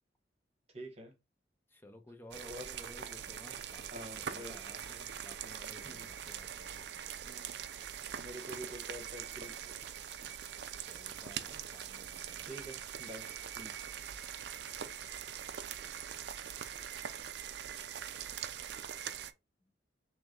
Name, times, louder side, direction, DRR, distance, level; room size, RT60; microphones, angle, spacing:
voice 1, 0.7-1.1 2.5-2.7 3.9-4.6 5.8-6.1 7.2-7.7 8.2-9.8 10.2-10.4 12.4-13.7, equal, 35° right, 1.1 m, -48 dB
voice 2, 1.7-6.9 10.8-12.5, left 1 dB, 10° left, 0.6 m, -54 dB
sound 1, 2.3-19.3, right 9 dB, 60° right, 0.4 m, -43 dB
3.4 x 3.0 x 3.7 m
head